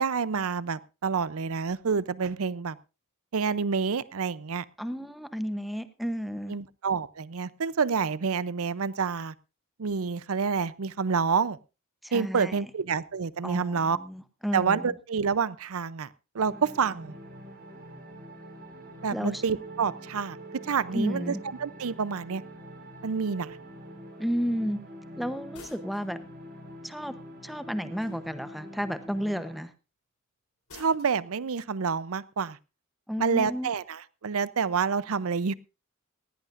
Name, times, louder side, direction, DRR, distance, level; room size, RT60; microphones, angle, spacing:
voice 1, 0.0-2.8 3.3-4.6 6.5-9.3 9.8-11.6 12.1-14.0 14.5-16.1 16.3-17.1 19.0-20.4 20.6-21.3 21.6-22.4 23.0-23.6 30.7-32.6 33.2-35.5, right 5 dB, 70° right, 18 dB, 0.6 m, -28 dB
voice 2, 4.8-6.5 12.0-12.7 13.4-14.9 19.1-19.4 20.9-21.4 24.2-24.8 25.2-26.2 26.8-27.1 27.4-29.7 33.1-33.7, equal, ahead, 10 dB, 0.8 m, -32 dB
sound 1, 16.4-29.6, equal, 45° right, 5.0 m, -45 dB
sound 2, 25.5-26.1 28.0-28.5 30.7-31.2, left 3 dB, 80° left, 4.4 m, -50 dB
18.5 x 16.5 x 2.5 m, 0.30 s
head